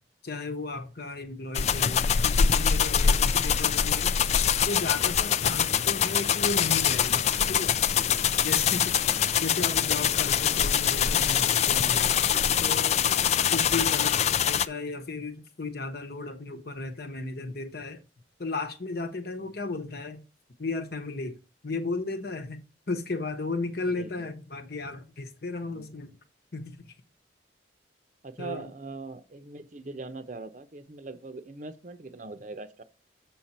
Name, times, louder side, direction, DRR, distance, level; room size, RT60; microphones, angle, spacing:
voice 1, 0.2-4.1 4.7-7.8 8.4-8.9 9.4-12.2 12.6-13.1 13.5-14.2 14.5-18.0 18.4-20.2 20.6-21.4 21.6-26.2 26.5-27.0 28.4-28.7, left 3 dB, 55° left, 1.1 m, -34 dB
sound 1, 1.6-14.7, left 8 dB, 35° left, 0.3 m, -24 dB
voice 2, 23.9-24.3 25.6-25.9 28.2-32.8, right 3 dB, 45° right, 0.7 m, -41 dB
7.4 x 5.9 x 4.3 m
head